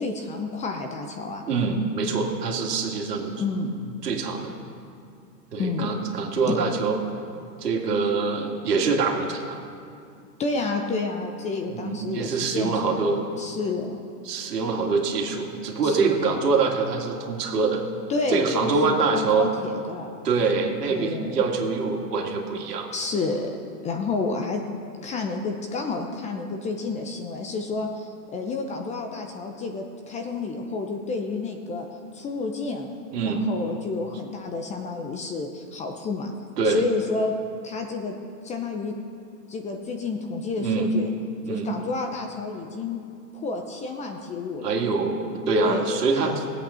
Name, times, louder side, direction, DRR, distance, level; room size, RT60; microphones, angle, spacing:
voice 1, 0.0-1.4 3.4-3.7 5.6-5.9 6.5-6.6 10.4-14.0 15.8-16.3 18.1-20.1 20.9-21.5 22.9-23.5 23.8-24.6 25.0-31.9 32.1-32.9 33.2-36.3 36.6-37.3 37.6-38.1 38.4-38.9 39.5-41.1 41.5-43.0 43.3-44.8 45.6-46.4, left 3 dB, 15° left, 3 dB, 0.7 m, -30 dB
voice 2, 1.4-3.3 3.8-4.5 5.5-7.0 7.6-9.6 11.8-13.2 14.2-17.8 18.3-19.5 20.2-22.9 33.1-33.5 36.6-36.8 40.6-41.0 41.4-41.7 44.6-46.4, right 4 dB, 75° right, 1 dB, 2.3 m, -24 dB
17.5 x 8.3 x 5.6 m, 2.4 s
hypercardioid pair, 125°, 48 cm